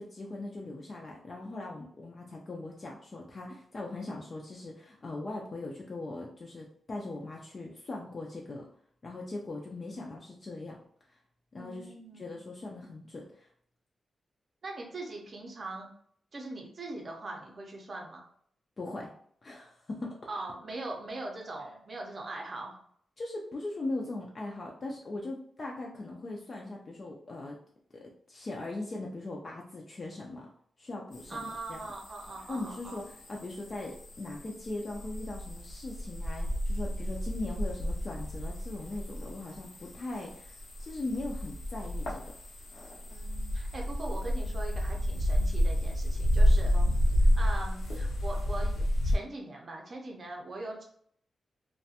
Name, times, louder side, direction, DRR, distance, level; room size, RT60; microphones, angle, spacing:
voice 1, 0.0-8.7 9.0-10.8 11.1-11.2 11.5-13.5 18.8-19.1 19.4-20.1 23.2-27.6 27.9-30.5 30.8-31.8 32.5-33.0 33.3-42.3 46.7-46.9, left 2 dB, 35° left, -1 dB, 0.3 m, -40 dB
voice 2, 11.6-12.3 14.6-15.9 16.3-18.3 20.3-22.8 31.3-33.0 43.1-46.7 47.4-50.8, right 2 dB, 40° right, 0 dB, 0.6 m, -41 dB
sound 1, 31.1-49.2, equal, 85° left, 0.7 m, -31 dB
2.4 x 2.1 x 2.7 m, 0.62 s
wide cardioid pair, 145°, 0 cm